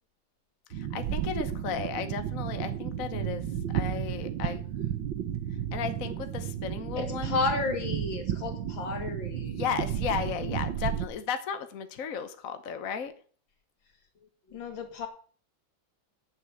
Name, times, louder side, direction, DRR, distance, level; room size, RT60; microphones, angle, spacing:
voice 1, 0.7-4.6 5.7-7.4 9.4-13.1, left 7 dB, 50° left, 9 dB, 1.2 m, -35 dB
sound 1, 0.7-11.1, right 10 dB, 75° right, 1.7 m, -33 dB
voice 2, 7.0-9.6 14.5-15.1, left 4 dB, 75° left, 4 dB, 2.8 m, -32 dB
9.8 x 7.6 x 6.9 m, 0.43 s
omnidirectional pair, 2.1 m